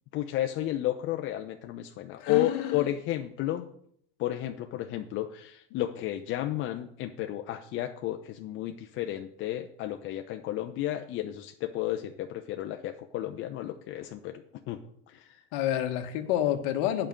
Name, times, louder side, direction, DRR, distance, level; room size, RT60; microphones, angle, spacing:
voice 1, 0.1-3.7 4.2-14.4 14.7-14.8 15.1-15.4, left 13 dB, 45° left, 5 dB, 0.7 m, -32 dB
voice 2, 2.2-2.9 15.5-17.1, left 11 dB, 60° left, 6 dB, 1.4 m, -29 dB
8.9 x 5.2 x 7.3 m, 0.67 s
supercardioid pair, 125°, 29 cm